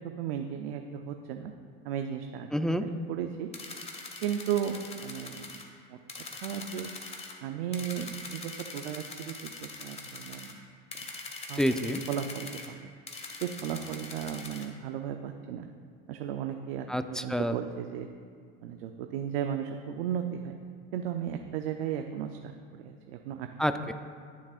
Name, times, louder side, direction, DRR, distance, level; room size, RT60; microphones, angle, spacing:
voice 1, 0.2-1.5 1.8-2.5 2.8-3.5 4.2-5.6 5.9-6.0 6.4-6.9 7.4-10.6 11.5-11.6 12.1-12.9 13.4-15.7 16.1-18.1 18.6-20.5 20.9-22.5 22.8-23.5, right 9 dB, 85° right, 5 dB, 0.7 m, -35 dB
voice 2, 2.5-2.8 11.5-12.0 16.9-17.6 23.6-23.9, equal, ahead, 8 dB, 0.5 m, -28 dB
sound 1, 3.5-5.7 6.1-7.3 7.7-10.5 10.9-12.7 13.1-14.7, left 3 dB, 20° left, 1.5 m, -43 dB
20.0 x 7.3 x 2.5 m, 2.2 s
supercardioid pair, 95°, 29 cm